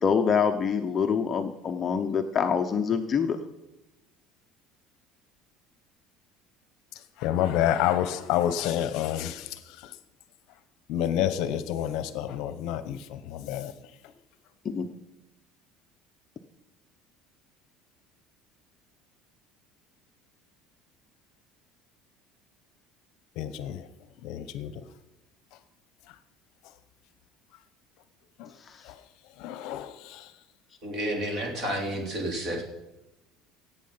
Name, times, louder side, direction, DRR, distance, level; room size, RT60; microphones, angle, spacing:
voice 1, 0.0-3.4 14.6-14.9 28.7-28.8, left 6 dB, 20° left, 0.6 m, -25 dB
voice 2, 7.2-9.9 10.9-13.7 23.4-23.9 24.2-24.7 28.4-28.5 28.8-28.9 29.4-30.3 31.6-31.7, left 11 dB, 55° left, 0.8 m, -29 dB
voice 3, 30.8-32.6, right 1 dB, 35° right, 3.2 m, -30 dB
17.0 x 8.5 x 5.6 m
cardioid pair, 170°, 0 cm